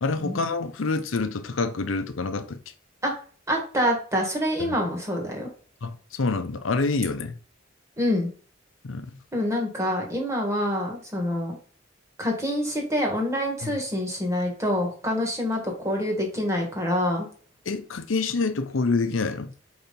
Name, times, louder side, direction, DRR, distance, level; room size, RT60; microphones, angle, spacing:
voice 1, 0.0-2.6 4.6-4.8 5.8-7.4 8.8-9.1 13.6-13.7 17.7-19.5, left 3 dB, 80° left, 0.6 m, -27 dB
voice 2, 3.5-5.5 8.0-8.3 9.3-11.6 12.2-17.3, equal, 15° right, 1.6 m, -26 dB
4.4 x 4.1 x 5.3 m
head